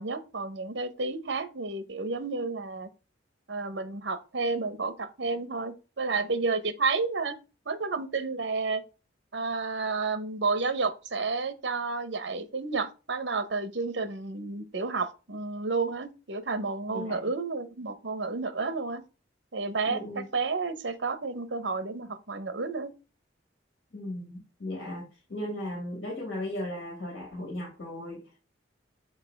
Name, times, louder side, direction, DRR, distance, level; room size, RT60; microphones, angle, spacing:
voice 1, 0.0-2.9 3.5-7.3 7.7-8.8 9.3-19.0 19.5-22.9, right 4 dB, 65° right, 1.0 m, -31 dB
voice 2, 16.9-17.2 19.9-20.3 23.9-28.4, left 1 dB, 75° left, 2.4 m, -37 dB
6.6 x 4.6 x 3.4 m
head